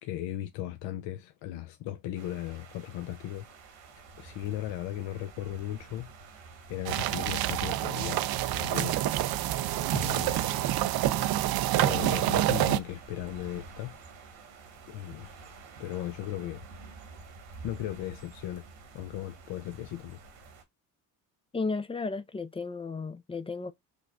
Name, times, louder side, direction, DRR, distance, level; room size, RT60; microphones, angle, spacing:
voice 1, 0.0-3.5 4.2-6.1 6.7-9.0 9.9-10.5 11.8-13.9 14.9-16.7 17.6-18.6 18.9-20.2, left 13 dB, 65° left, 0.6 m, -37 dB
sound 1, 2.1-20.6, right 4 dB, 75° right, 1.5 m, -50 dB
sound 2, 6.9-12.8, right 14 dB, 50° right, 0.5 m, -27 dB
voice 2, 21.5-23.7, left 4 dB, 15° left, 0.3 m, -34 dB
5.1 x 2.1 x 2.3 m
hypercardioid pair, 65°, 49 cm